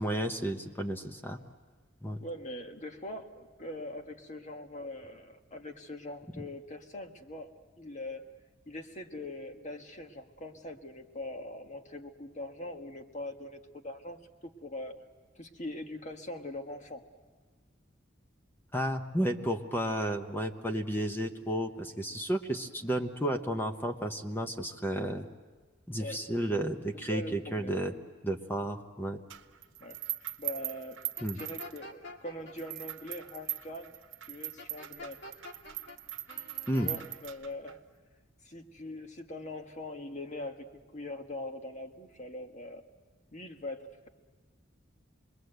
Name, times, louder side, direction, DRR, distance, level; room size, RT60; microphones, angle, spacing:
voice 1, 0.0-1.4 2.0-2.2 6.3-6.4 18.7-25.3 25.9-27.9 28.2-29.2 31.2-31.4 36.7-36.9, right 1 dB, 10° left, 5 dB, 1.0 m, -32 dB
voice 2, 2.2-7.5 7.8-8.2 8.7-14.9 15.3-17.0 26.0-26.2 27.1-27.9 29.8-30.0 30.4-31.0 31.3-33.9 34.3-35.2 36.8-37.8 38.4-40.7 40.9-42.8 43.3-44.1, left 1 dB, 40° left, 5 dB, 1.5 m, -42 dB
sound 1, 29.3-32.1 32.6-37.7, right 13 dB, 70° right, 1.1 m, -40 dB
sound 2, 31.2-32.5 34.6-36.0 36.3-37.0, left 2 dB, 60° left, 2.2 m, -47 dB
27.5 x 21.5 x 8.0 m, 1.4 s
head